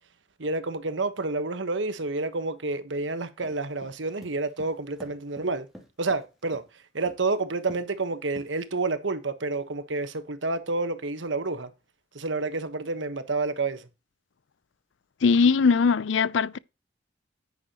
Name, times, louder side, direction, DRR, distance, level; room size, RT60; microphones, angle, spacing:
voice 1, 0.4-5.7 6.0-11.7 12.1-13.9, right 3 dB, 75° right, 1.2 m, -29 dB
sound 1, 3.4-6.7 7.1-7.4 7.7-8.0 8.4-8.9, equal, ahead, 2.8 m, -48 dB
voice 2, 15.2-16.6, left 5 dB, 75° left, 0.5 m, -20 dB
9.7 x 9.6 x 3.0 m
head